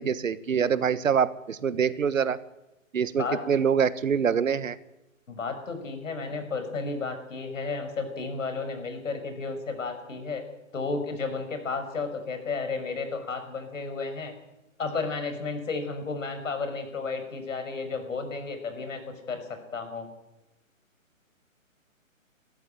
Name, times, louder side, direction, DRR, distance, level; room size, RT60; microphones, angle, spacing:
voice 1, 0.0-2.4 2.9-4.8, right 7 dB, 70° right, 16 dB, 1.4 m, -25 dB
voice 2, 5.3-10.4 10.7-14.3 14.8-19.4 19.7-20.1, left 4 dB, 70° left, 7 dB, 6.1 m, -32 dB
23.0 x 14.0 x 9.0 m, 0.95 s
hypercardioid pair, 160°, 40 cm